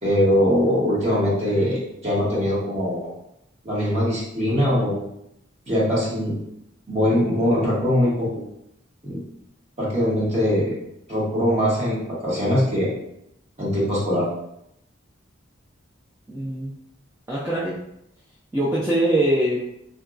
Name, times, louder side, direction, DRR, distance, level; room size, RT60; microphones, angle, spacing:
voice 1, 0.0-3.1 3.6-5.1 5.7-6.4 6.9-8.4 9.0-9.2 9.8-10.8 11.1-12.9 13.6-14.3, equal, 30° right, -6 dB, 1.0 m, -22 dB
voice 2, 16.3-16.8 17.3-17.8 18.5-19.6, right 1 dB, 15° right, -6 dB, 0.3 m, -22 dB
3.8 x 2.2 x 2.4 m, 0.79 s
head